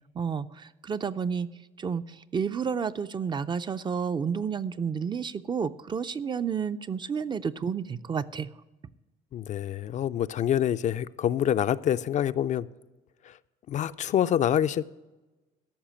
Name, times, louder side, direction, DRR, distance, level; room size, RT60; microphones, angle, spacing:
voice 1, 0.2-1.5 1.8-8.5, right 6 dB, 25° right, 12 dB, 0.4 m, -31 dB
voice 2, 9.3-12.7 13.2-13.4 13.7-14.9, left 10 dB, 45° left, 13 dB, 0.4 m, -26 dB
13.0 x 5.7 x 8.8 m, 1.1 s
cardioid pair, 110°, 17 cm